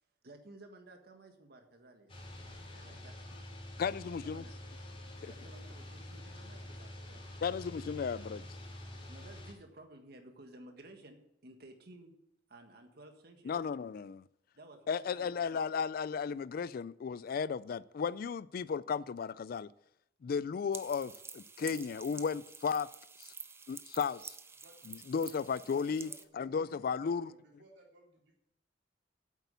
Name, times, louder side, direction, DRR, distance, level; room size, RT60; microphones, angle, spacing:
voice 1, 0.2-2.3 2.7-3.4 4.2-4.5 5.2-7.3 9.1-12.1 12.5-13.6 14.5-15.5, right 1 dB, 60° right, 1.6 m, -55 dB
sound 1, 2.1-9.5, left 1 dB, 35° left, 2.7 m, -47 dB
voice 2, 3.8-4.4 5.2-5.3 7.4-8.4 13.5-14.2 14.9-19.7 20.2-22.9 23.2-23.3 23.7-24.3 24.9-27.3, left 6 dB, 55° left, 0.3 m, -35 dB
sound 2, 20.7-26.2, right 5 dB, 15° right, 0.5 m, -49 dB
voice 3, 25.3-28.4, right 1 dB, 75° right, 3.3 m, -61 dB
8.4 x 8.2 x 6.8 m
head